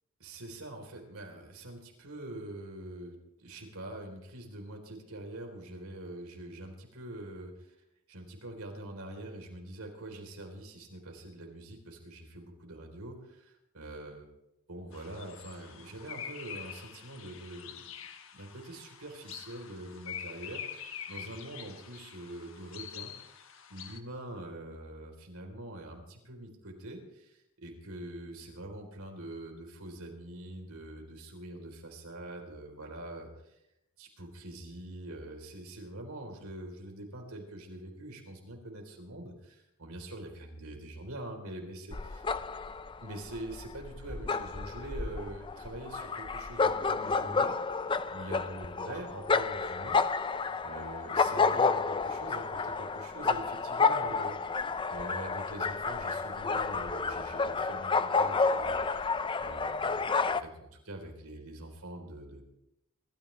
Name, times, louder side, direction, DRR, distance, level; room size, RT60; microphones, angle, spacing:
voice 1, 0.2-7.8 8.1-14.3 14.7-17.7 18.3-23.4 23.7-33.5 34.0-42.3 43.0-47.5 48.1-54.5 54.9-59.1 59.4-62.4, right 1 dB, 85° right, 2 dB, 4.0 m, -44 dB
sound 1, 14.9-24.0, left 8 dB, 65° left, 1.4 m, -45 dB
sound 2, 41.9-60.4, left 4 dB, 20° left, 0.4 m, -30 dB
26.0 x 13.5 x 3.4 m, 0.84 s
head